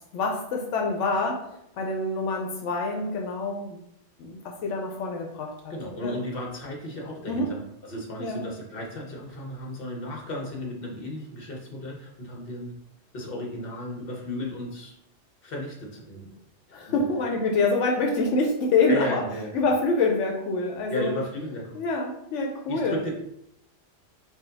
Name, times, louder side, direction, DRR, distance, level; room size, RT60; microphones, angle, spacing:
voice 1, 0.1-1.5 1.8-3.8 4.2-5.7 6.0-6.1 7.3-7.5 8.2-8.4 16.7-19.2 19.5-21.1 21.7-23.0, left 3 dB, 85° left, 1 dB, 1.0 m, -26 dB
voice 2, 5.7-12.7 13.1-14.9 15.4-16.3 16.9-17.1 18.9-19.7 20.9-21.8 22.7-23.1, left 1 dB, 55° left, -1 dB, 1.2 m, -34 dB
5.0 x 2.3 x 3.9 m, 0.77 s
omnidirectional pair, 1.2 m